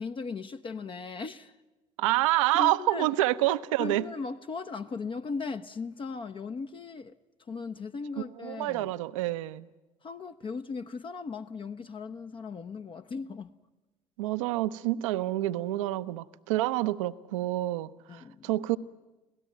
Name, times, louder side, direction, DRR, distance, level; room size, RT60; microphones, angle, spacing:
voice 1, 0.0-1.6 2.5-3.1 3.8-8.9 10.0-13.5 18.1-18.6, left 4 dB, 30° left, 0.7 m, -38 dB
voice 2, 2.0-4.0 8.4-9.7 14.2-18.8, right 16 dB, 65° right, 0.7 m, -28 dB
25.5 x 18.0 x 9.2 m
figure-of-eight pair, 60°, 18 cm